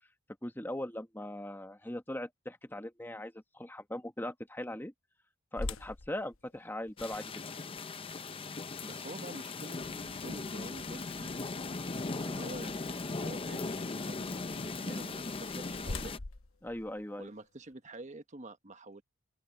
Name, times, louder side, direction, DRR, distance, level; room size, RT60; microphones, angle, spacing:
voice 1, 0.4-4.9 5.5-7.3 12.2-12.4 16.6-17.3, left 1 dB, 10° left, 1.3 m, -40 dB
sound 1, 5.6-11.5 12.1-12.2 12.8-13.0 15.1-17.7, left 2 dB, 80° left, 1.0 m, -45 dB
sound 2, 7.0-16.2, left 3 dB, 25° left, 0.6 m, -38 dB
voice 2, 8.8-11.3 12.3-16.2 17.2-19.0, right 2 dB, 35° right, 1.3 m, -48 dB
sound 3, 9.8-16.1, left 2 dB, 65° left, 1.4 m, -55 dB
open air
head